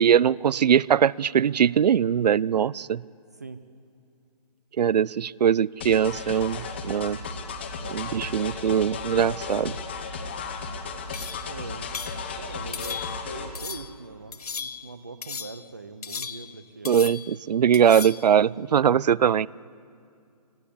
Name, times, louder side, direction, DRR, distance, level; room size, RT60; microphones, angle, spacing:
voice 1, 0.0-3.0 4.8-7.2 7.9-9.7 16.8-19.5, right 8 dB, 85° right, 24 dB, 0.4 m, -21 dB
sound 1, 5.8-13.5, left 4 dB, 15° left, 0.9 m, -35 dB
sound 2, 11.1-11.5 11.9-12.2 12.7-13.3 13.6-13.9 14.3-14.9 15.2-15.7 16.0-16.6 16.9-17.4 17.7-18.3, left 6 dB, 70° left, 1.0 m, -36 dB
voice 2, 11.5-11.9 12.4-17.0, right 3 dB, 25° right, 12 dB, 0.5 m, -42 dB
25.5 x 15.5 x 8.4 m, 2.4 s
hypercardioid pair, 180°, 20 cm